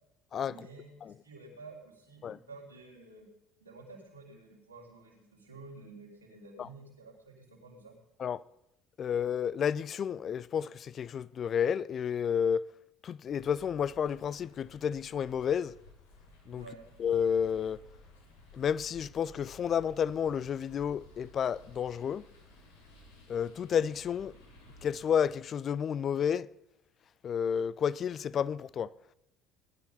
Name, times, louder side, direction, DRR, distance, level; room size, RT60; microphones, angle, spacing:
voice 1, 0.4-3.3 3.6-8.0 16.5-16.9, right 3 dB, 90° right, 3.9 m, -51 dB
voice 2, 9.0-12.7 13.0-15.7 16.5-16.6 17.0-17.8 18.5-22.2 23.3-24.3 24.8-26.5 27.2-28.9, left 8 dB, 40° left, 0.4 m, -31 dB
sound 1, 13.2-25.3, left 1 dB, 75° left, 4.1 m, -56 dB
20.0 x 12.0 x 4.1 m
figure-of-eight pair, 60°, 0 cm